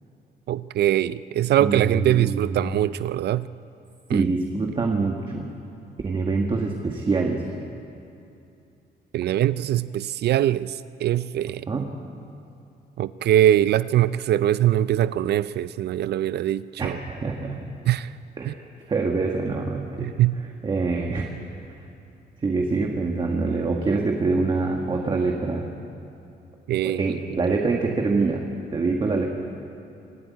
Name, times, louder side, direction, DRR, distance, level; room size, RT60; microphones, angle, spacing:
voice 1, 0.5-3.5 4.1-4.3 9.1-11.6 13.0-17.0 17.9-18.1 18.5-18.6 20.0-20.4 26.7-27.0, right 12 dB, 65° right, 16 dB, 0.4 m, -22 dB
voice 2, 1.6-2.6 4.1-5.5 6.0-7.4 11.7-11.9 16.8-17.6 18.4-20.1 20.6-21.3 22.4-25.6 26.8-28.4 28.7-29.3, right 3 dB, 25° right, 1 dB, 1.4 m, -25 dB
25.0 x 12.5 x 9.4 m, 2.7 s
cardioid pair, 170°, 18 cm